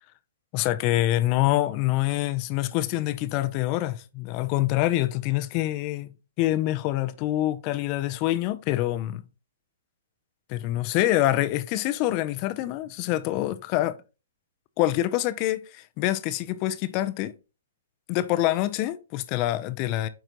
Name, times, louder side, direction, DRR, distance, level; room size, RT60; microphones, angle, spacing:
voice 1, 0.5-9.2 10.5-14.0 14.8-17.3 18.1-20.1, left 15 dB, 40° left, 0.5 m, -26 dB
9.3 x 3.9 x 2.9 m
hypercardioid pair, 135°, 0 cm